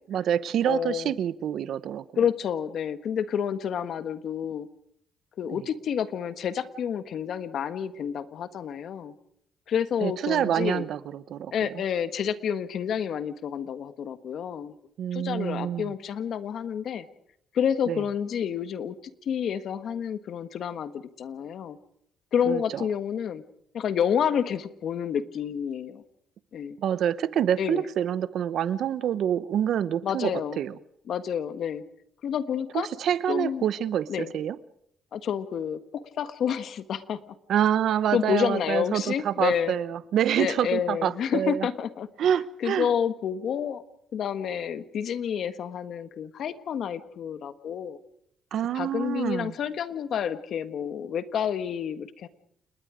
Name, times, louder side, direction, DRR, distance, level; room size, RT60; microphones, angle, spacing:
voice 1, 0.1-2.0 10.0-11.7 15.0-15.9 17.9-18.0 22.4-22.9 26.8-30.8 32.7-34.6 37.5-41.7 42.2-42.9 48.5-49.5, right 9 dB, 70° right, 0.9 m, -27 dB
voice 2, 0.6-1.1 2.2-4.7 5.4-9.1 9.7-10.8 11.5-14.8 15.1-17.1 17.5-21.8 22.3-23.4 23.7-26.0 26.5-26.8 27.6-27.8 30.0-30.6 31.1-31.8 32.2-32.9 33.3-33.6 34.1-34.3 35.1-37.2 38.1-39.7 40.4-42.1 42.6-43.8 44.1-48.0 48.7-52.3, left 8 dB, 65° left, 1.5 m, -29 dB
29.5 x 20.0 x 5.1 m
cardioid pair, 90°, 0 cm